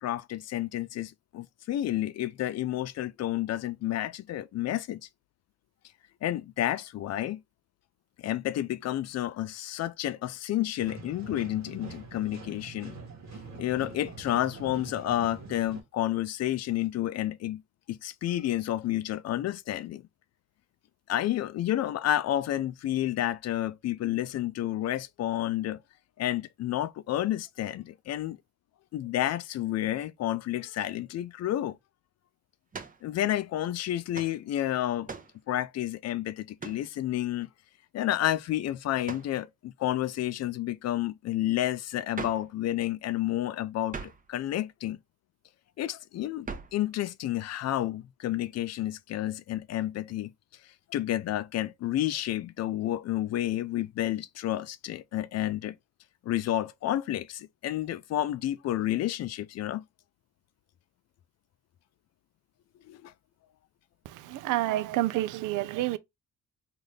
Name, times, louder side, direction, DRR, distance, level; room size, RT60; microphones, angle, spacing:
voice 1, 0.0-5.0 6.2-7.4 8.2-13.0 13.5-17.6 17.9-20.0 21.1-25.8 26.2-28.4 28.9-31.8 33.0-35.1 35.5-37.5 37.9-45.0 45.8-50.3 50.9-55.8 56.2-59.8 62.9-63.1, left 13 dB, 60° left, 0.4 m, -30 dB
sound 1, 10.8-15.8, right 4 dB, 65° right, 1.3 m, -44 dB
sound 2, 32.7-33.0 34.1-34.4 35.1-35.4 36.6-36.9 39.0-39.4 42.1-42.5 43.9-44.3 46.4-46.8, right 4 dB, 30° right, 0.8 m, -40 dB
voice 2, 64.1-66.0, right 16 dB, 85° right, 0.5 m, -29 dB
3.9 x 2.5 x 3.2 m
cardioid pair, 90°, 30 cm